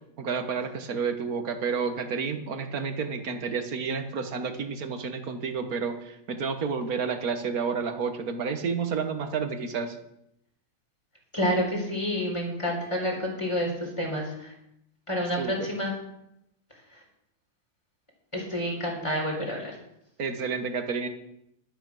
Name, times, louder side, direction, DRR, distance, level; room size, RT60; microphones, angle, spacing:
voice 1, 0.2-10.0 15.4-15.7 20.2-21.1, right 5 dB, 70° right, 8 dB, 1.8 m, -30 dB
voice 2, 11.3-14.5 15.1-15.9 16.9-17.0 18.3-19.8, equal, 20° left, -1 dB, 4.3 m, -29 dB
12.0 x 12.0 x 6.2 m, 0.80 s
omnidirectional pair, 1.6 m